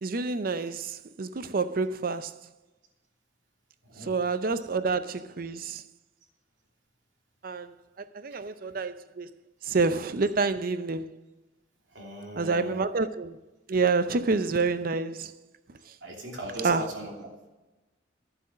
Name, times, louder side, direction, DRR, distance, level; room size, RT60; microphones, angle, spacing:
voice 1, 0.0-2.3 4.0-5.8 7.4-7.7 8.1-9.3 9.7-11.2 12.4-13.4 13.7-15.3 16.6-16.9, right 4 dB, 50° right, 0.6 m, -28 dB
voice 2, 3.8-4.2 8.3-8.4 11.9-12.8 16.0-17.5, right 1 dB, 80° right, 2.8 m, -39 dB
12.0 x 7.8 x 6.2 m
head